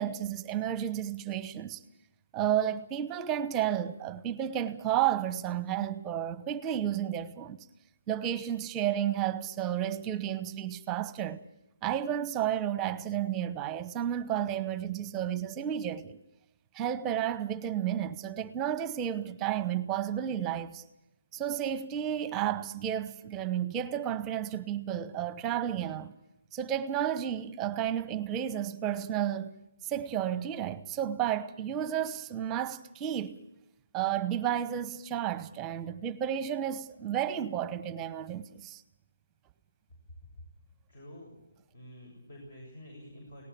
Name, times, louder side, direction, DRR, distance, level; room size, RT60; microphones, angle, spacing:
voice 1, 0.0-1.8 2.3-7.7 8.1-11.4 11.8-16.2 16.7-20.8 21.3-26.2 26.5-29.5 29.8-33.4 33.9-38.8, right 10 dB, 15° right, 0.9 m, -32 dB
voice 2, 40.9-41.4 41.7-43.4, equal, 55° left, 7.2 m, -48 dB
18.5 x 18.5 x 8.6 m
hypercardioid pair, 160°, 0 cm